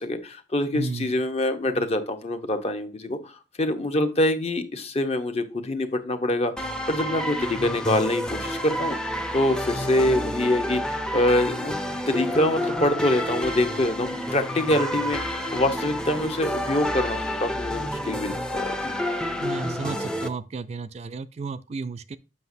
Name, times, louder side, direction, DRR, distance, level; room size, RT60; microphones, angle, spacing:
voice 1, 0.0-3.3 3.6-9.0 9.3-11.8 12.1-18.9, left 1 dB, 35° left, 0.9 m, -25 dB
voice 2, 0.7-1.1 19.4-22.2, right 4 dB, 35° right, 0.3 m, -33 dB
sound 1, 6.6-20.3, equal, 5° left, 0.6 m, -29 dB
7.7 x 5.8 x 2.7 m
head